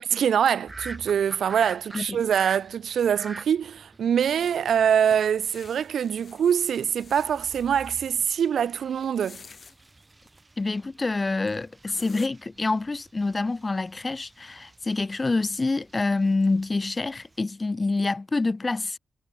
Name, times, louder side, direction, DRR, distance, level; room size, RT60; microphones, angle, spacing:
voice 1, 0.0-9.4, right 8 dB, 80° right, 0.4 m, -24 dB
sound 1, 0.7-17.4, right 2 dB, 30° right, 1.4 m, -47 dB
sound 2, 4.3-8.0 9.0-9.8 10.9-11.0 11.5-11.6 11.9-12.3, left 5 dB, 55° left, 7.7 m, -49 dB
voice 2, 10.6-19.0, left 3 dB, 35° left, 0.6 m, -27 dB
cardioid pair, 50°, 0 cm